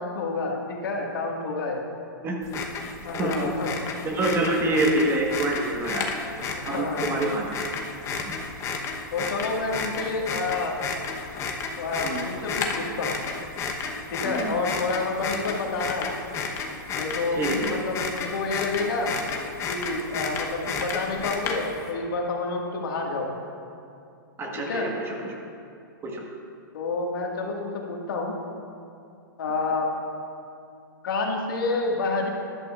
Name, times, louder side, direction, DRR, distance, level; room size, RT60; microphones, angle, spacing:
voice 1, 0.0-1.8 3.0-3.8 6.6-7.3 9.1-10.8 11.8-13.2 14.1-16.1 17.0-19.2 19.7-23.4 24.6-24.9 26.7-28.4 29.4-29.9 31.0-32.3, left 3 dB, 70° left, 0 dB, 1.8 m, -29 dB
sound 1, 2.4-21.9, left 5 dB, 25° left, 1.0 m, -32 dB
voice 2, 4.0-6.1 6.6-7.4 8.3-8.4 12.0-12.2 14.2-14.6 17.3-17.7 24.4-25.3 26.0-26.2, right 2 dB, 20° right, 0 dB, 1.4 m, -26 dB
14.0 x 11.5 x 2.5 m, 2.5 s
hypercardioid pair, 130°, 12 cm